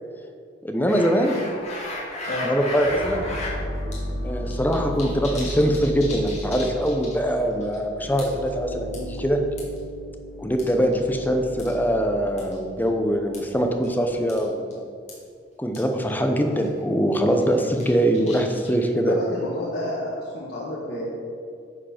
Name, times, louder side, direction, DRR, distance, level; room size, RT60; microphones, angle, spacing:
voice 1, 0.6-1.4 2.4-3.2 4.2-9.4 10.4-14.8 15.6-19.2, equal, 10° left, 4 dB, 0.7 m, -23 dB
sound 1, 0.9-3.6 3.9-4.0 4.3-7.3 7.6-7.8 8.2-8.5 8.9-9.8 10.6-11.3 11.6-11.8 12.4-12.6 13.3-13.5 13.8-14.0 14.3-14.5 14.7-14.8 15.1-15.2 15.7-15.8 16.1-16.2 16.5-16.8 17.3-18.9, left 2 dB, 35° left, 2.2 m, -35 dB
sound 2, 2.6-14.5, equal, 50° right, 1.2 m, -35 dB
voice 2, 19.1-21.1, left 1 dB, 55° left, -6 dB, 1.4 m, -30 dB
9.7 x 4.7 x 5.8 m, 2.3 s
head